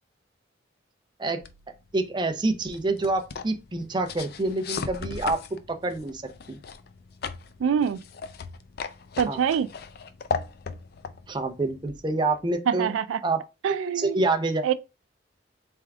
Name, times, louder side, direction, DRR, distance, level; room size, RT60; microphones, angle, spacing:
sound 1, 1.4-12.5, left 5 dB, 55° left, 0.4 m, -38 dB
voice 1, 1.9-6.2 6.5-6.6 9.3-9.4 11.3-12.9 13.2-13.4 14.0-14.6, right 2 dB, 25° right, 0.5 m, -27 dB
voice 2, 7.6-8.0 9.2-9.7 12.7-13.2 13.6-14.2 14.6-14.7, right 7 dB, 85° right, 0.3 m, -24 dB
3.5 x 3.4 x 3.4 m
head